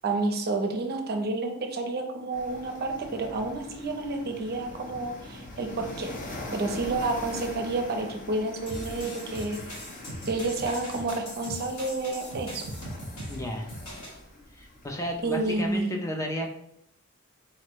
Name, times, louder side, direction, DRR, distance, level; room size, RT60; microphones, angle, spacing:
voice 1, 0.0-6.1 6.5-9.8 10.3-12.6 15.2-16.0, right 2 dB, 45° right, 5 dB, 0.5 m, -30 dB
sound 1, 2.3-15.8, left 1 dB, 40° left, 0.7 m, -43 dB
sound 2, 8.7-14.2, equal, 75° left, 1.4 m, -40 dB
voice 2, 13.3-13.7 14.5-16.6, equal, 15° left, 1 dB, 0.4 m, -33 dB
4.0 x 2.1 x 4.4 m, 0.75 s
head